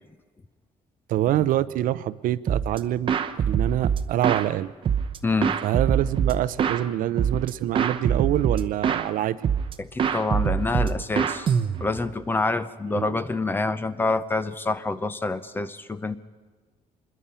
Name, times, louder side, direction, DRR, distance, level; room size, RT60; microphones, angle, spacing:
voice 1, 1.1-3.1 3.5-4.7 5.6-9.5 12.9-13.2, right 13 dB, 70° right, 15 dB, 0.6 m, -25 dB
sound 1, 2.5-2.8 3.1-4.5 4.8-6.8 7.2-7.5 7.7-9.1 9.4-9.7 10.0-12.1, right 7 dB, 35° right, 0.8 m, -24 dB
voice 2, 5.2-5.6 9.8-11.5 11.8-16.2, left 3 dB, 15° left, 13 dB, 0.6 m, -27 dB
25.5 x 21.0 x 5.6 m, 1.4 s
cardioid pair, 180°, 15 cm